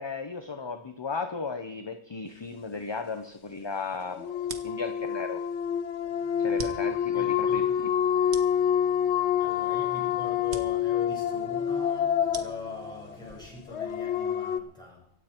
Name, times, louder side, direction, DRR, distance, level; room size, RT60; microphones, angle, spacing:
voice 1, 0.0-4.3 4.6-5.4 6.4-7.9, left 4 dB, 25° left, 0.8 m, -35 dB
sound 1, 4.0-14.6, left 9 dB, 85° left, 1.0 m, -27 dB
sound 2, 4.4-14.3, right 5 dB, 80° right, 1.4 m, -47 dB
Bowed string instrument, 6.0-14.3, left 4 dB, 50° left, 5.7 m, -56 dB
voice 2, 7.1-7.8 8.5-8.7 9.4-15.1, left 1 dB, 5° left, 5.6 m, -43 dB
25.0 x 8.5 x 4.5 m
omnidirectional pair, 1.1 m